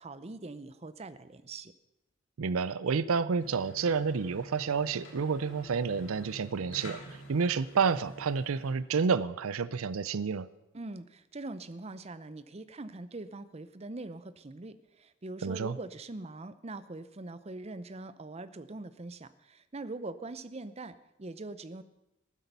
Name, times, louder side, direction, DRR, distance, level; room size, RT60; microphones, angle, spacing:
voice 1, 0.0-1.7 10.7-21.8, right 2 dB, 30° right, 13 dB, 0.6 m, -42 dB
voice 2, 2.4-10.5 15.4-15.8, right 5 dB, 75° right, 17 dB, 0.5 m, -30 dB
sound 1, 3.3-8.7, right 1 dB, 60° left, 2.9 m, -47 dB
14.5 x 12.5 x 5.4 m, 0.90 s
head